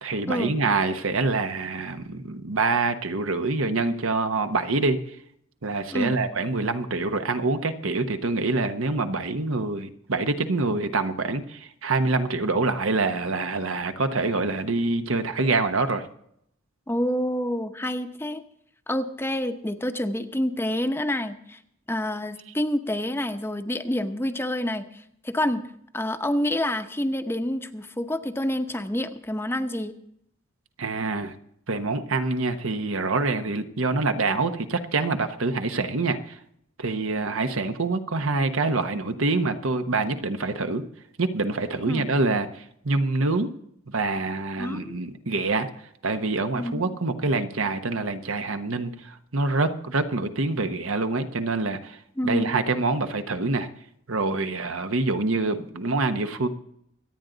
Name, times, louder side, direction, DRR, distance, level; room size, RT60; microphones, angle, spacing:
voice 1, 0.0-5.0 5.6-16.0 30.8-31.3 31.7-36.3 36.8-40.8 41.2-42.5 42.8-43.5 43.9-45.7 46.0-52.0 52.2-53.7 54.1-56.5, right 3 dB, 75° right, 8 dB, 1.1 m, -26 dB
voice 2, 16.9-18.4 18.9-21.6 21.9-25.6 25.9-29.9 41.9-42.1 44.6-45.0 46.6-46.9 52.2-52.6, left 1 dB, 10° left, 8 dB, 0.8 m, -28 dB
24.5 x 9.2 x 4.0 m, 0.73 s
head